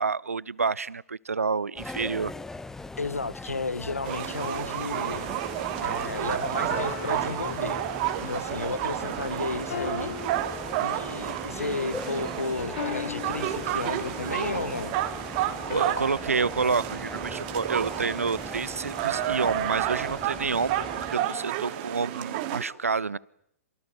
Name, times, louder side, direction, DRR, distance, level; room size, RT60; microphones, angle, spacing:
voice 1, 0.0-2.3 15.6-23.2, right 4 dB, 70° right, 1.0 m, -29 dB
sound 1, 1.8-21.2, left 3 dB, 5° left, 1.0 m, -40 dB
voice 2, 3.0-5.3 5.8-7.8 8.2-10.2 10.8-14.9, left 3 dB, 75° left, 1.6 m, -33 dB
sound 2, 4.0-22.6, right 12 dB, 35° right, 2.9 m, -31 dB
sound 3, 5.2-5.6 6.7-8.3 9.7-11.3 12.8-14.4 15.7-18.1, left 9 dB, 50° left, 2.3 m, -40 dB
28.5 x 27.5 x 6.6 m
figure-of-eight pair, 115°, 8 cm